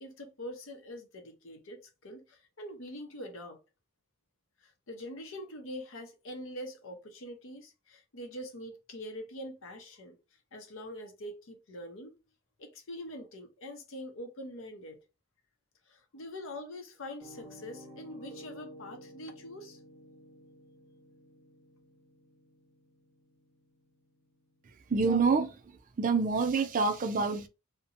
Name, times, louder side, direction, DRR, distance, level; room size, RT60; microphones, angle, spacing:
voice 1, 0.0-3.6 4.6-10.2 10.5-12.1 12.6-15.0 15.9-19.8, left 1 dB, 65° left, 0.7 m, -44 dB
Piano, 17.2-25.1, equal, 10° right, 1.3 m, -53 dB
voice 2, 24.9-25.5 26.0-27.5, right 4 dB, 40° right, 0.4 m, -26 dB
2.8 x 2.1 x 2.5 m
head